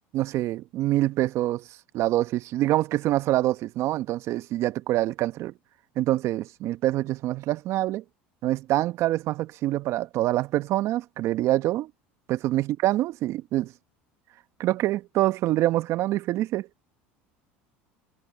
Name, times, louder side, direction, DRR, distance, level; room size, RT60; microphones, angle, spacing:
voice 1, 0.1-1.6 1.9-5.5 6.0-8.0 8.4-11.9 12.3-13.7 14.6-16.7, right 15 dB, 55° right, 1.1 m, -25 dB
hypercardioid pair, 85°, 6 cm